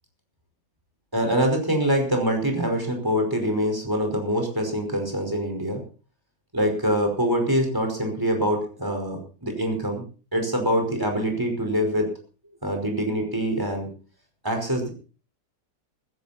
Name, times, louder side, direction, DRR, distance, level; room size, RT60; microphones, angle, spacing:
voice 1, 1.1-5.8 6.5-10.0 10.3-12.1 12.6-13.9 14.4-14.9, equal, 10° right, 3 dB, 5.2 m, -24 dB
15.5 x 15.5 x 4.4 m, 0.38 s
omnidirectional pair, 1.9 m